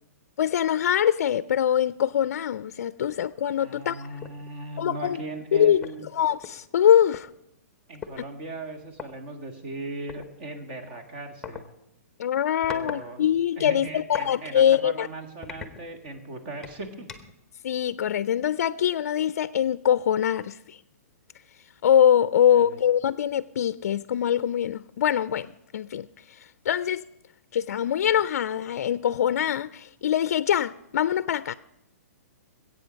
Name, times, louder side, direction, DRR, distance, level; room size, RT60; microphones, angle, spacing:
voice 1, 0.4-4.1 4.8-5.2 5.5-5.8 6.1-7.3 12.2-15.1 17.6-20.8 21.8-27.0 27.5-31.5, left 9 dB, 65° left, 15 dB, 0.4 m, -23 dB
sound 1, 3.0-3.2 3.7-3.8 4.2-4.5 5.5-5.6 5.8-7.2 8.0-8.1 8.9-9.1 10.1-10.2 11.4-11.6 12.3-13.0 13.3-14.3 14.8-14.9 15.4-16.2 16.6-17.4, left 6 dB, 5° left, 0.9 m, -41 dB
voice 2, 3.6-6.1 7.9-11.6 12.7-13.3 13.6-17.1 22.4-22.8, right 2 dB, 45° right, 6 dB, 1.8 m, -38 dB
20.5 x 8.4 x 5.2 m, 0.80 s
hypercardioid pair, 160°, 9 cm